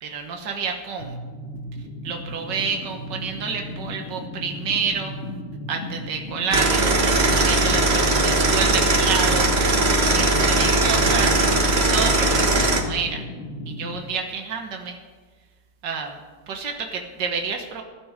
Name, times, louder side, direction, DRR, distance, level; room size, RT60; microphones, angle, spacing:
voice 1, 0.0-1.1 2.0-5.1 5.7-7.0 7.3-9.5 10.0-13.2 13.7-15.0 15.8-16.2 16.5-17.8, right 5 dB, 75° right, 3 dB, 2.0 m, -29 dB
sound 1, 1.0-14.0, left 1 dB, 40° left, 1.9 m, -35 dB
sound 2, 6.5-12.8, right 2 dB, 40° right, 1.5 m, -19 dB
20.0 x 11.5 x 3.7 m, 1.4 s
omnidirectional pair, 1.9 m